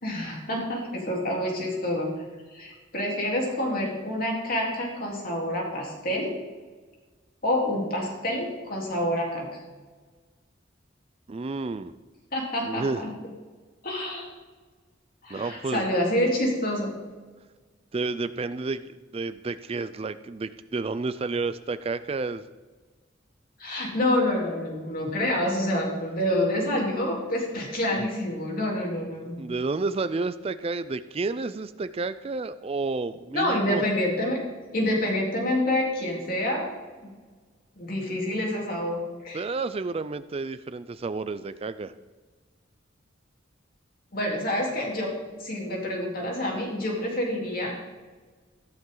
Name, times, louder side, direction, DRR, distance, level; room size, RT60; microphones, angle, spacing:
voice 1, 0.0-2.1 2.5-6.3 7.4-9.5 12.3-13.1 13.8-14.3 15.2-16.9 23.6-29.4 33.3-34.4 34.7-36.7 37.0-37.1 37.8-39.0 39.2-39.5 44.1-45.1 45.4-47.7, left 1 dB, 50° left, -2 dB, 3.5 m, -27 dB
voice 2, 11.3-11.9 12.7-13.0 15.3-15.9 17.9-22.4 28.0-28.1 29.4-33.8 39.3-41.9, right 3 dB, 30° right, 13 dB, 0.4 m, -30 dB
14.5 x 13.0 x 3.9 m, 1.4 s
head